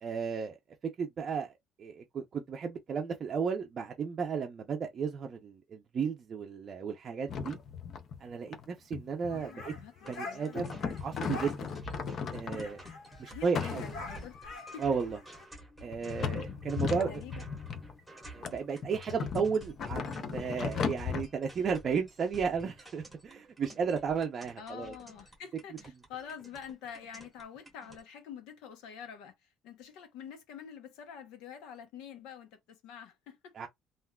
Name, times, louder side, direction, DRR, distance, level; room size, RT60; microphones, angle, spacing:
voice 1, 0.0-0.6 1.0-1.5 1.8-7.6 8.2-9.7 10.1-11.5 12.3-12.8 13.2-13.8 14.8-15.2 15.8-17.2 18.3-24.9 33.6-33.7, right 6 dB, 35° right, 0.5 m, -34 dB
sound 1, 7.3-8.2 8.5-8.7 8.9-10.0 10.5-13.0 13.5-14.4 15.0-15.1 15.9-17.9 18.4-21.2, left 6 dB, 40° left, 0.5 m, -36 dB
voice 2, 9.3-10.7 13.3-14.9 17.0-17.3 24.6-33.5, left 8 dB, 85° left, 0.8 m, -47 dB
sound 2, 9.3-11.0 11.3-11.6 11.9-12.0 12.2-15.4, left 3 dB, 65° left, 1.4 m, -46 dB
sound 3, 10.0-28.0, right 1 dB, ahead, 1.2 m, -52 dB
3.5 x 2.4 x 2.2 m
cardioid pair, 150°, 0 cm